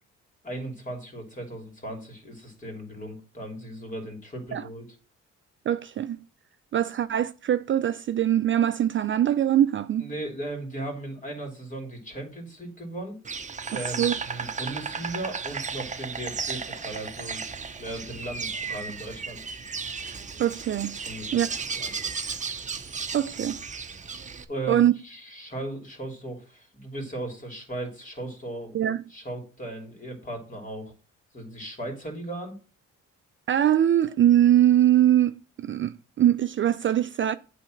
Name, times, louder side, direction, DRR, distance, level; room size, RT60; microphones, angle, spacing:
voice 1, 0.4-4.9 10.0-13.2 13.7-17.4 17.8-19.4 21.0-21.3 21.8-21.9 24.5-28.8 29.1-30.9 31.3-32.6, right 1 dB, 25° left, 3.0 m, -37 dB
voice 2, 5.7-6.2 6.7-10.1 13.7-14.2 20.4-21.0 21.3-21.5 23.1-23.6 24.7-24.9 28.7-29.0 33.5-37.4, right 11 dB, 40° right, 0.4 m, -22 dB
Insect, 13.2-24.4, right 5 dB, 25° right, 0.8 m, -34 dB
8.3 x 3.3 x 6.3 m
cardioid pair, 90°, 30 cm